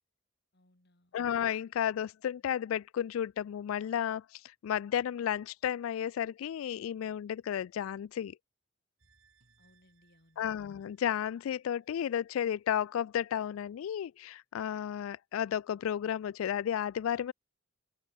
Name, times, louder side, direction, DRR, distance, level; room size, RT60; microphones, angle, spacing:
voice 1, 0.5-1.2 9.6-10.5, left 1 dB, 55° left, 6.2 m, -66 dB
voice 2, 1.1-8.4 10.4-17.3, left 9 dB, 75° left, 0.3 m, -33 dB
sound 1, 9.0-12.2 12.6-12.7, right 5 dB, 80° right, 6.6 m, -71 dB
head